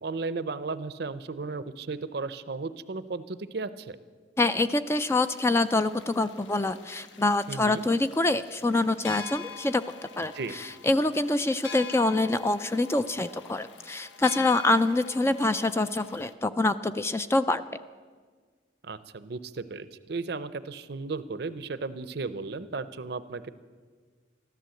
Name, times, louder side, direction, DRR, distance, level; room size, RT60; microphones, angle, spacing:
voice 1, 0.0-4.0 7.5-7.9 10.3-10.5 18.8-23.5, right 3 dB, 60° right, 14 dB, 0.6 m, -35 dB
voice 2, 4.4-9.8 10.2-17.6, left 2 dB, 15° left, 12 dB, 0.3 m, -25 dB
sound 1, 5.1-16.3, left 6 dB, 85° left, 0.9 m, -45 dB
13.5 x 13.0 x 7.8 m, 1.6 s
head